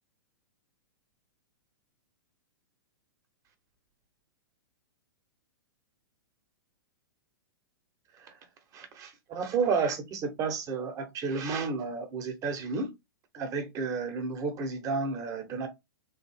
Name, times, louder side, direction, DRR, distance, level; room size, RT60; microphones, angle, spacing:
voice 1, 8.7-12.9 13.3-15.7, right 4 dB, 25° right, 1.0 m, -31 dB
3.6 x 2.7 x 3.6 m
figure-of-eight pair, 110°, 12 cm